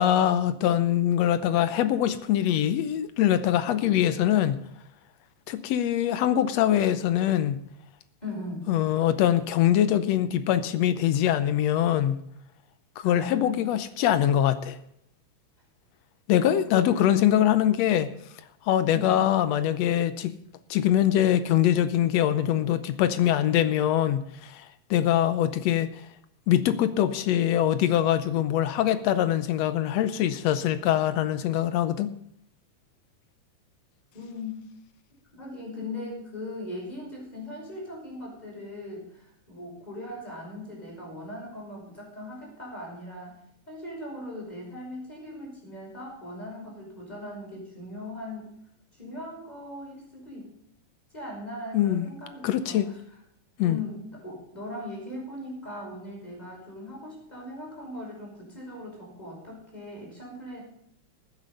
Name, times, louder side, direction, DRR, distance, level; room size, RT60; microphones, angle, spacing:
voice 1, 0.0-4.6 5.5-7.6 8.7-12.2 13.0-14.8 16.3-18.1 18.7-20.4 20.7-25.9 26.5-32.1 51.7-52.1 52.4-52.9 53.6-53.8, left 11 dB, 75° left, 12 dB, 1.8 m, -23 dB
voice 2, 8.2-8.7 13.0-13.6 16.5-16.9 18.9-19.2 34.1-34.6 35.3-43.3 43.7-48.5 48.9-50.5 51.1-53.0 53.6-60.6, left 1 dB, 15° left, -2 dB, 5.7 m, -39 dB
14.5 x 9.5 x 5.4 m, 0.72 s
omnidirectional pair, 3.3 m